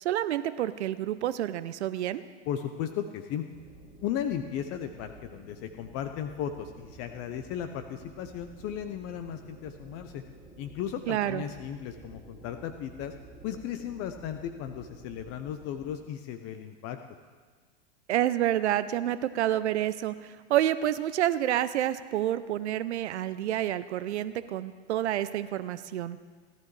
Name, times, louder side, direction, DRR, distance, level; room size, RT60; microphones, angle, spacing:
voice 1, 0.0-2.2 11.1-11.4 18.1-26.2, right 12 dB, 85° right, 14 dB, 0.6 m, -28 dB
voice 2, 2.5-3.4 4.0-10.2 10.6-13.1 13.4-17.0, left 9 dB, 45° left, 8 dB, 0.8 m, -35 dB
sound 1, 3.5-16.0, right 2 dB, 20° right, 2.3 m, -51 dB
17.0 x 12.0 x 3.2 m, 1.5 s
hypercardioid pair, 105°, 33 cm